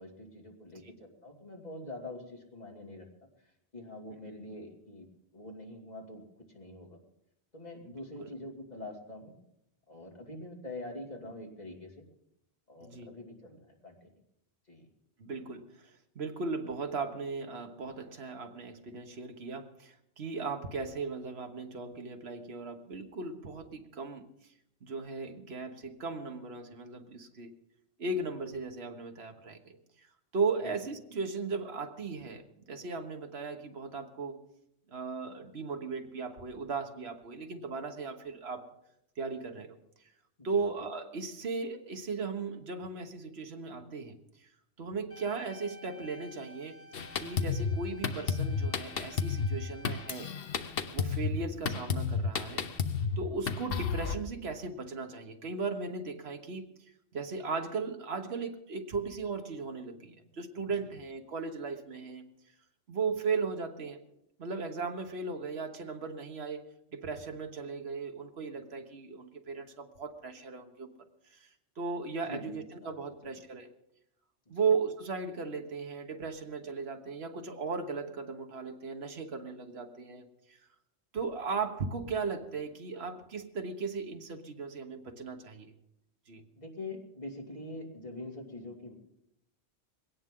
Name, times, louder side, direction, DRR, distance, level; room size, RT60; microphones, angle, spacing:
voice 1, 0.0-3.1 3.4-5.1 5.3-7.0 7.5-9.4 9.9-12.1 12.7-14.1 14.7-14.9 30.6-30.7 40.4-40.6 60.8-60.9 72.3-72.9 74.5-74.7 86.5-88.9, left 2 dB, 40° left, 1 dB, 2.8 m, -45 dB
voice 2, 15.2-24.5 24.8-27.5 28.0-29.8 30.3-34.4 34.9-38.7 39.2-39.8 40.4-44.5 44.8-46.8 47.2-50.6 50.9-52.7 53.2-62.2 62.9-64.0 64.4-70.9 71.3-71.5 71.8-73.7 74.5-80.6 81.1-85.7 86.3-86.5, right 4 dB, 65° right, 5 dB, 1.6 m, -37 dB
sound 1, 45.1-50.1, equal, 10° left, 2.3 m, -52 dB
Drum kit, 46.9-54.2, left 5 dB, 60° left, 1.0 m, -32 dB
20.5 x 17.5 x 3.8 m, 0.79 s
omnidirectional pair, 1.1 m